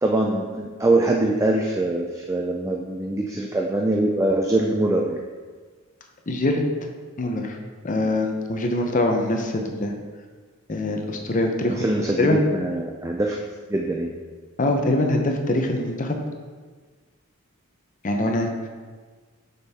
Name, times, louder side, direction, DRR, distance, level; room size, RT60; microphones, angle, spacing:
voice 1, 0.0-5.2 11.7-13.4 13.7-14.1, right 2 dB, 15° right, 1 dB, 0.3 m, -23 dB
voice 2, 6.3-6.6 7.2-7.6 7.8-9.9 10.7-12.4 14.6-16.2 18.0-18.5, left 1 dB, 35° left, 3 dB, 0.7 m, -23 dB
6.6 x 5.3 x 3.5 m, 1.5 s
head